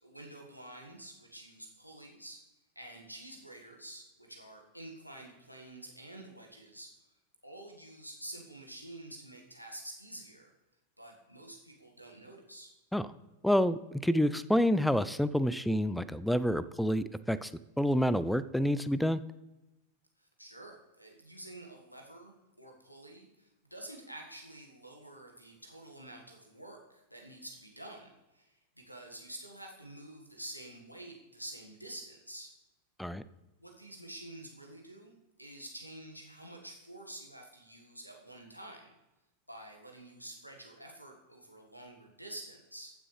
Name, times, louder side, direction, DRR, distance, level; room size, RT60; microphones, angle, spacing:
voice 1, 0.0-2.4 2.7-6.9 7.4-10.5 11.0-12.7 20.2-32.5 33.6-35.1 35.4-38.9 39.5-42.9, right 1 dB, 90° left, 2 dB, 1.6 m, -48 dB
voice 2, 13.4-17.5 17.8-19.2 33.0-33.2, equal, ahead, 16 dB, 0.4 m, -28 dB
15.0 x 6.1 x 3.3 m, 1.0 s
figure-of-eight pair, 90°, 0 cm